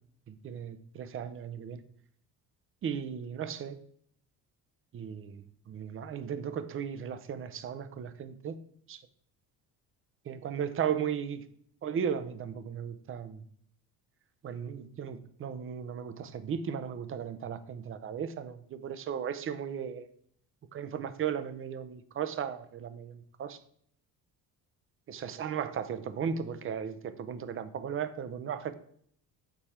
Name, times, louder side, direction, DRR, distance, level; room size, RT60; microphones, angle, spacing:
voice 1, 0.3-1.8 2.8-3.8 4.9-8.6 8.9-9.0 10.3-11.4 11.8-13.4 14.4-20.1 20.7-23.6 25.1-28.8, right 8 dB, 35° right, 12 dB, 0.6 m, -36 dB
6.9 x 4.3 x 4.2 m, 0.63 s
cardioid pair, 115°, 39 cm